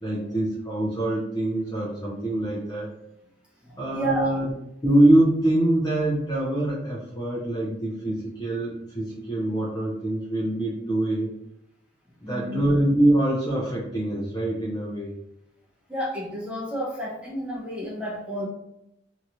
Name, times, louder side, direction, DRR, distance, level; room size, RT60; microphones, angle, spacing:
voice 1, 0.0-2.9 3.8-4.5 4.8-11.3 12.2-15.1, right 1 dB, 20° left, -6 dB, 0.7 m, -24 dB
voice 2, 3.6-4.3 12.2-12.7 15.9-18.4, equal, 5° right, -7 dB, 1.0 m, -31 dB
3.1 x 2.9 x 2.6 m, 0.81 s
head